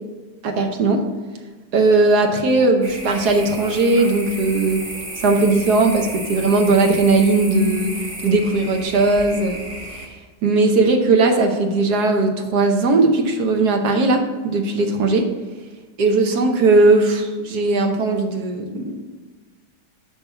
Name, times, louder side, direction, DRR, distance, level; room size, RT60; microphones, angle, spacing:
voice 1, 0.4-1.0 1.7-4.8 5.2-7.9 8.2-9.6 9.9-10.1 10.4-15.3 16.0-19.0, right 3 dB, 65° right, 3 dB, 1.4 m, -18 dB
sound 1, 2.8-10.1, right 1 dB, 20° right, 1.2 m, -33 dB
5.9 x 5.6 x 6.9 m, 1.3 s
omnidirectional pair, 1.9 m